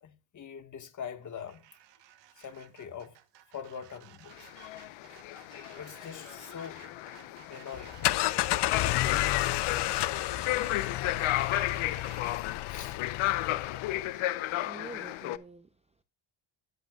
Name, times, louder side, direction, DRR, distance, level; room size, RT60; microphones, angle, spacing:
voice 1, 0.0-1.6 2.4-3.2 3.5-4.5 5.7-6.8 7.4-8.2 8.8-9.5 12.7-13.0 13.5-13.8, left 7 dB, 40° left, 1.7 m, -43 dB
sound 1, 1.2-12.3, right 12 dB, 60° right, 1.3 m, -55 dB
sound 2, 4.3-15.4, left 15 dB, 80° left, 0.9 m, -34 dB
sound 3, 7.7-14.1, left 16 dB, 60° left, 0.6 m, -31 dB
voice 2, 14.6-16.0, right 4 dB, 15° right, 0.6 m, -48 dB
18.0 x 8.1 x 2.4 m
cardioid pair, 135°, 47 cm